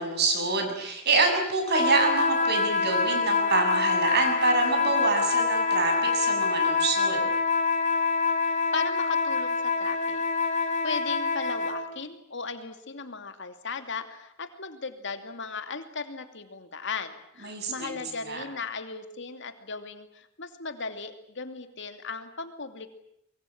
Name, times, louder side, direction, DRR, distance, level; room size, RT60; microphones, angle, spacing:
voice 1, 0.0-7.2 17.4-18.0 18.3-18.4, right 3 dB, 55° right, 5 dB, 7.2 m, -26 dB
sound 1, 1.6-11.8, left 4 dB, 40° left, 3.8 m, -26 dB
voice 2, 8.5-10.2 10.5-22.9, left 4 dB, 60° left, 8 dB, 2.7 m, -37 dB
24.0 x 23.0 x 8.8 m, 0.76 s
head